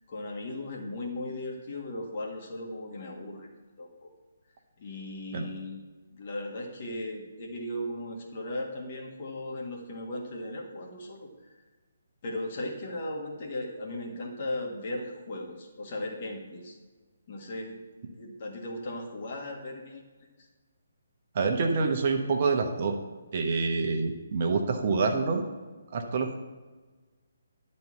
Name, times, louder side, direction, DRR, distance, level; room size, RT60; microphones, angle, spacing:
voice 1, 0.1-3.5 3.8-4.1 4.8-5.8 6.1-11.6 12.2-16.8 17.3-17.8 18.2-20.5, left 1 dB, 40° left, 0 dB, 1.7 m, -37 dB
voice 2, 21.3-23.0 23.3-25.4 25.9-26.4, right 4 dB, 40° right, 3 dB, 1.0 m, -27 dB
10.5 x 4.3 x 7.0 m, 1.3 s
figure-of-eight pair, 140°, 0 cm